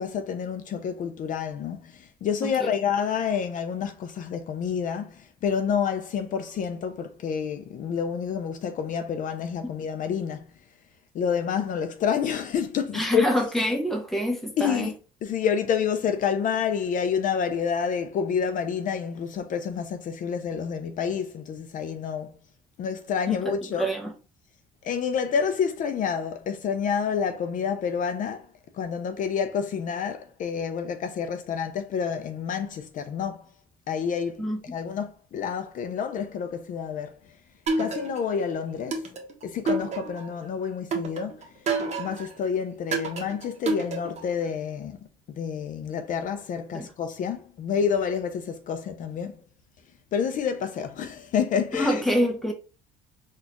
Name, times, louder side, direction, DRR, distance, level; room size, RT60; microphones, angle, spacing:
voice 1, 0.0-10.5 11.1-13.3 14.6-14.9 15.2-22.4 22.8-23.9 24.8-28.5 28.7-33.5 33.9-37.2 37.8-39.1 39.4-41.5 42.0-45.0 45.4-49.4 50.1-52.0, left 7 dB, 50° left, 0.4 m, -28 dB
voice 2, 12.9-14.9 23.3-24.1 34.4-34.6 46.7-46.9 51.8-52.5, equal, ahead, 0.8 m, -26 dB
sound 1, 37.7-38.4 38.9-40.4 40.9-42.3 42.9-44.4, right 3 dB, 40° right, 0.9 m, -29 dB
4.0 x 2.3 x 2.9 m
cardioid pair, 110°, 17 cm